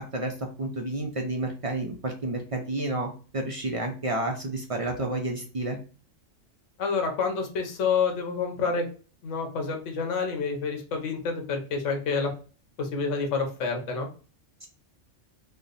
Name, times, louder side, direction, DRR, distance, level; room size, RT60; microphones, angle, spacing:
voice 1, 0.6-5.8 14.6-14.7, right 2 dB, 60° right, 2 dB, 0.3 m, -30 dB
voice 2, 6.8-8.8 9.2-12.3 12.8-14.1, left 5 dB, 80° left, 3 dB, 1.2 m, -28 dB
3.2 x 2.1 x 3.9 m, 0.37 s
omnidirectional pair, 1.3 m